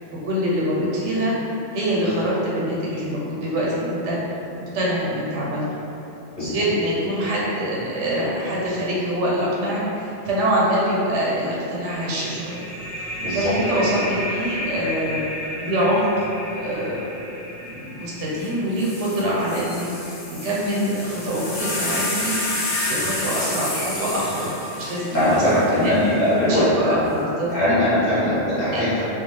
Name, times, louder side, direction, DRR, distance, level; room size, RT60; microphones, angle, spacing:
voice 1, 0.2-4.2 4.7-5.8 6.4-12.6 13.3-15.2 15.6-17.1 17.6-19.9 20.4-22.4 22.9-26.0 26.5-27.5 28.7-28.8, equal, 90° right, -6 dB, 1.0 m, -24 dB
sound 1, 12.0-21.2, equal, 80° left, 1.3 m, -33 dB
voice 2, 13.2-13.5 25.1-26.9 27.5-29.1, left 1 dB, 40° left, -13 dB, 1.1 m, -20 dB
sound 2, 18.4-18.5 18.8-26.2 27.1-27.5, left 1 dB, 60° left, 0.7 m, -29 dB
2.4 x 2.4 x 3.1 m, 2.9 s
omnidirectional pair, 1.2 m